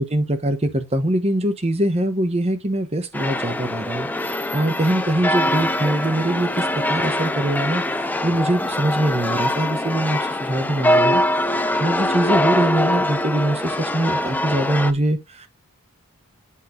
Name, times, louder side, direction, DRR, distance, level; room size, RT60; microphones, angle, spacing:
voice 1, 0.0-11.5 11.8-15.5, right 1 dB, 30° right, 1.0 m, -23 dB
sound 1, 3.1-14.9, left 1 dB, 10° left, 0.5 m, -23 dB
8.4 x 3.3 x 4.9 m
head